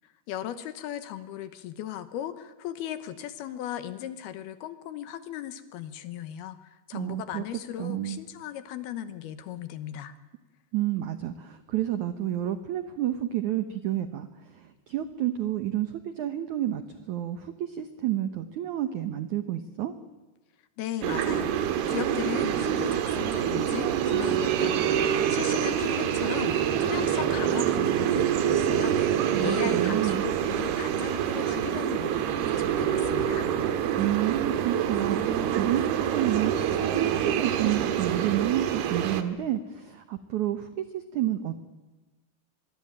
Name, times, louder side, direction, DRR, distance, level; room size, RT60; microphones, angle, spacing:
voice 1, 0.0-10.1 20.8-33.5, left 11 dB, 70° left, 12 dB, 2.7 m, -37 dB
voice 2, 6.9-7.4 7.8-8.2 10.7-20.0 29.3-30.2 34.0-41.6, right 12 dB, 85° right, 10 dB, 1.7 m, -30 dB
sound 1, 21.0-39.2, right 9 dB, 70° right, 3.2 m, -26 dB
26.0 x 21.5 x 8.8 m, 1.2 s
omnidirectional pair, 5.1 m